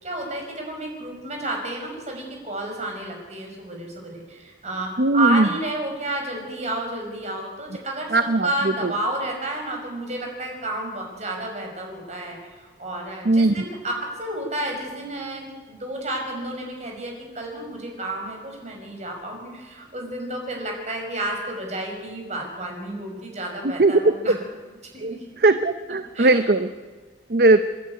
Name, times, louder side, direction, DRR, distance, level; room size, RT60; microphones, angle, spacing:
voice 1, 0.0-24.4 24.9-25.2 26.1-26.5, right 1 dB, 40° right, 1 dB, 5.9 m, -31 dB
voice 2, 5.0-5.5 8.1-8.5 13.3-13.5 23.8-23.9 25.0-25.1 25.4-26.7 27.3-27.6, right 2 dB, 60° right, 10 dB, 0.8 m, -18 dB
28.5 x 11.5 x 9.8 m, 1.4 s
head